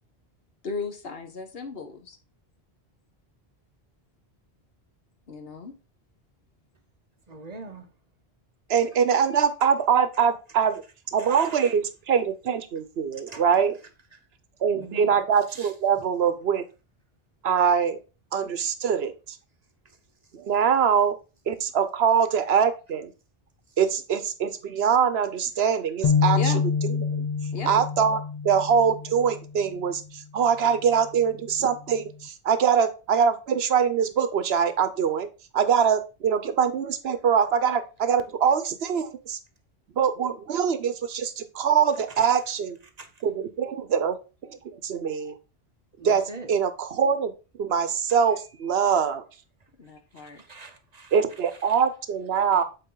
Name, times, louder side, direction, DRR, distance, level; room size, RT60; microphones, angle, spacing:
voice 1, 0.6-2.2 5.3-5.7 14.7-15.2 26.3-26.6 27.5-27.8 49.8-50.4, left 4 dB, 65° left, 1.3 m, -36 dB
voice 2, 7.3-7.9 9.6-9.7 11.2-11.7 13.3-13.4 14.1-14.2 14.8-15.1 15.5-15.7 42.2-42.3 43.0-43.1 46.0-46.5 50.2-51.1, right 3 dB, 40° right, 0.9 m, -42 dB
voice 3, 8.7-10.8 11.1-13.8 14.6-16.6 17.4-18.0 18.3-19.4 20.3-21.2 21.5-23.1 23.8-26.5 27.1-27.3 27.7-35.3 35.5-39.4 40.0-42.8 43.2-44.2 44.4-44.6 44.8-45.4 46.0-47.3 47.6-49.2 51.1-52.6, right 7 dB, 75° right, 1.0 m, -23 dB
sound 1, 26.0-29.6, left 6 dB, 45° left, 0.6 m, -26 dB
8.0 x 4.2 x 3.8 m
omnidirectional pair, 1.1 m